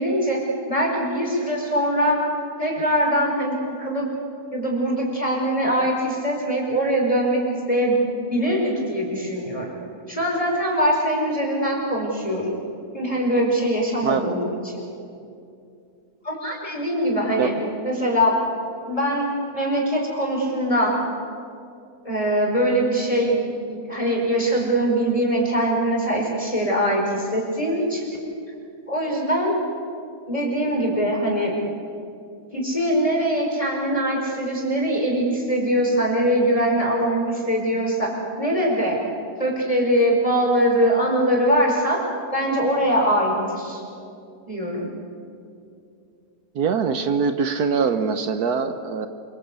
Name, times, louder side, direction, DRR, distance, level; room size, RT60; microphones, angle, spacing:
voice 1, 0.0-2.2 2.6-4.1 4.5-8.0 8.3-9.7 10.1-12.5 12.9-14.8 16.2-17.5 17.8-18.4 18.8-21.0 22.0-23.4 23.7-28.1 28.9-29.6 30.3-31.5 32.5-39.0 39.4-42.0 42.3-43.8 44.5-44.9, equal, 20° left, -2 dB, 5.1 m, -22 dB
voice 2, 14.0-14.3 17.4-17.5 46.5-49.1, right 6 dB, 75° right, 8 dB, 1.5 m, -23 dB
27.0 x 25.0 x 8.3 m, 2.6 s
omnidirectional pair, 1.7 m